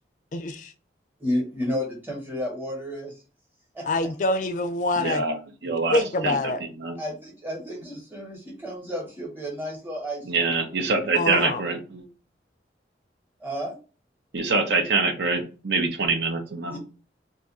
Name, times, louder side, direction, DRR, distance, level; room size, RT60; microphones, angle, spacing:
voice 1, 0.3-0.7 3.9-5.2 5.7-6.6 11.1-11.6, left 2 dB, 45° left, 0.3 m, -25 dB
voice 2, 1.2-3.2 3.7-3.9 7.0-10.6 13.4-13.7 16.7-16.8, equal, 10° right, 1.0 m, -32 dB
voice 3, 5.0-5.3 5.6-6.4 6.8-6.9 10.2-12.1 14.3-16.8, right 3 dB, 70° right, 0.7 m, -25 dB
2.6 x 2.4 x 4.0 m
head